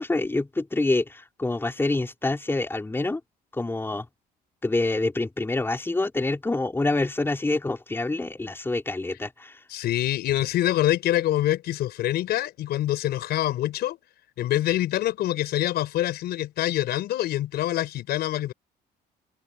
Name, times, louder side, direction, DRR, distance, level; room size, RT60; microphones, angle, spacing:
voice 1, 0.0-3.2 3.5-4.1 4.6-9.6, left 2 dB, 15° left, 3.9 m, -26 dB
voice 2, 9.7-14.0 14.4-18.5, left 14 dB, 70° left, 5.0 m, -25 dB
cardioid pair, 110°, 17 cm